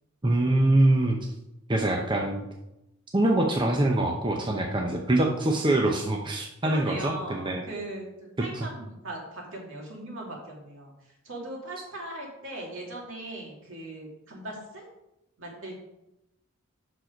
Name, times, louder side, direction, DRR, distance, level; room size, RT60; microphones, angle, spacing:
voice 1, 0.2-1.2 1.7-2.4 3.1-7.6 8.5-8.7, right 1 dB, 25° right, 1 dB, 0.7 m, -24 dB
voice 2, 6.6-10.9 11.2-14.8 15.4-15.8, right 1 dB, 65° right, -2 dB, 2.7 m, -39 dB
7.5 x 6.1 x 5.1 m, 0.89 s
head